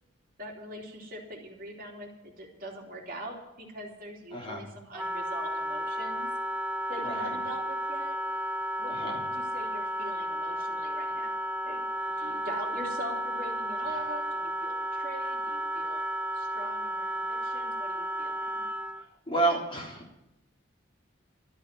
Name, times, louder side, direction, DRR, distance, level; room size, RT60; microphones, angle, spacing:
voice 1, 0.4-6.3 6.9-8.1 8.8-11.8 12.2-16.0 16.3-18.6, right 1 dB, 50° right, 0 dB, 3.0 m, -42 dB
voice 2, 4.3-4.7 7.0-7.3 8.9-9.2 12.2-12.4 19.3-20.3, right 2 dB, 25° left, -2 dB, 3.4 m, -31 dB
Wind instrument woodwind instrument, 4.9-19.0, equal, 10° right, 0.5 m, -33 dB
13.5 x 8.1 x 9.6 m, 0.89 s
head